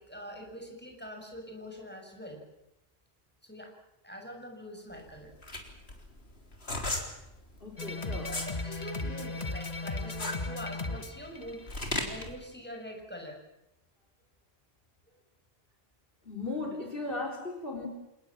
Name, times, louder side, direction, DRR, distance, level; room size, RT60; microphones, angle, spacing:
voice 1, 0.0-2.4 3.4-3.7 4.0-5.3 8.2-13.4, equal, 10° left, 2 dB, 6.8 m, -44 dB
sound 1, 4.9-8.6 9.0-12.3, left 2 dB, 75° left, 4.0 m, -36 dB
voice 2, 7.6-8.4 16.2-17.9, left 2 dB, 60° left, 2 dB, 4.5 m, -36 dB
sound 2, 7.8-12.2, left 3 dB, 40° left, 1.6 m, -36 dB
28.5 x 19.5 x 7.5 m, 0.89 s
omnidirectional pair, 1.1 m